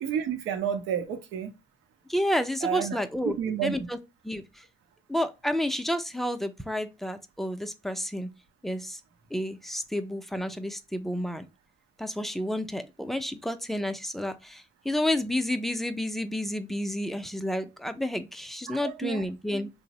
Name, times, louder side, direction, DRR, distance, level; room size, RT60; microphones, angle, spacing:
voice 1, 0.0-1.5 2.6-3.8 18.7-19.2, right 8 dB, 90° right, 0.6 m, -31 dB
voice 2, 2.1-3.3 3.6-4.0 4.2-4.6 5.1-8.3 8.6-9.0 9.3-11.5 12.0-19.7, left 1 dB, ahead, 0.4 m, -30 dB
2.9 x 2.0 x 2.7 m
cardioid pair, 90°, 20 cm